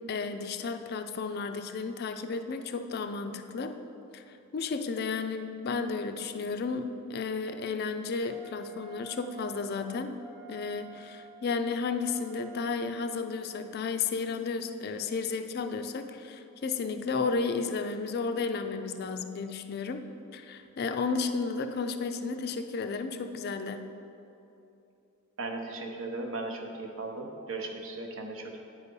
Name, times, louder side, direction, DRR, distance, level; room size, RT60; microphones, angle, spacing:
voice 1, 0.0-3.8 4.1-4.2 4.5-10.2 10.5-20.0 20.3-23.8, left 4 dB, 45° left, 8 dB, 0.3 m, -33 dB
Wind instrument woodwind instrument, 8.3-13.6, right 3 dB, 15° right, 0.7 m, -51 dB
voice 2, 25.4-28.6, right 2 dB, 60° right, 3 dB, 0.8 m, -37 dB
9.4 x 4.0 x 5.3 m, 2.8 s
head